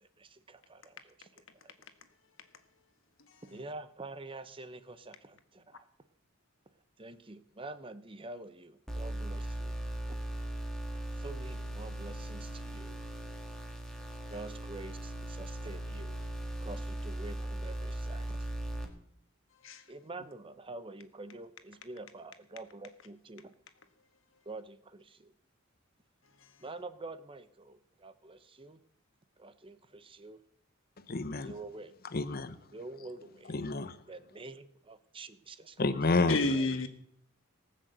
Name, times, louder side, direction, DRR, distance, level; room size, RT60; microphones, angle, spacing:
voice 1, 0.0-1.7 3.4-5.9 7.0-9.8 10.1-10.2 11.2-13.0 14.3-16.2 16.6-18.5 19.9-23.5 24.5-25.3 26.6-28.8 29.4-30.4 31.4-31.9 32.7-33.6 34.1-35.8 36.6-36.7, right 2 dB, 25° right, 0.7 m, -47 dB
voice 2, 3.2-3.6 14.1-14.2 19.6-19.8 26.4-26.5 36.3-36.9, left 2 dB, 65° left, 1.4 m, -32 dB
sound 1, 8.9-18.9, right 1 dB, 5° left, 1.9 m, -38 dB
voice 3, 31.1-31.5 32.1-32.6 33.5-34.0 35.8-36.4, left 3 dB, 45° left, 0.8 m, -29 dB
18.5 x 6.5 x 7.9 m
head